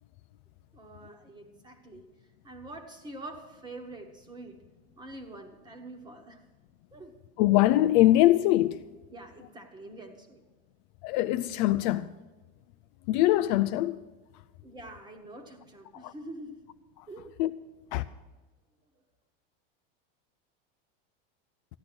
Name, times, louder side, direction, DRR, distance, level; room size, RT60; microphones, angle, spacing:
voice 1, 0.7-2.0 2.4-4.6 5.0-6.4 6.9-7.1 9.1-10.4 14.6-16.7 17.1-17.4, right 2 dB, 15° right, 1.3 m, -45 dB
voice 2, 7.4-8.8 11.0-12.1 13.1-14.0 15.9-16.1 17.0-17.1 17.4-17.5 17.9-18.0, left 15 dB, 50° left, 0.4 m, -23 dB
14.5 x 10.5 x 6.1 m
supercardioid pair, 155°, 30 cm